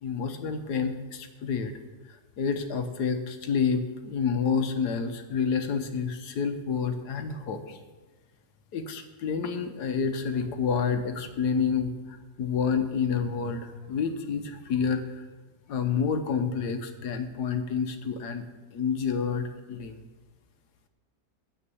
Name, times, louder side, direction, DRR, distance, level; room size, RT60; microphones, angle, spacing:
voice 1, 0.0-1.7 2.4-7.8 8.7-15.2 15.7-18.4 18.7-20.0, left 6 dB, 65° left, 7 dB, 1.4 m, -29 dB
9.8 x 7.3 x 7.0 m, 1.2 s
omnidirectional pair, 1.9 m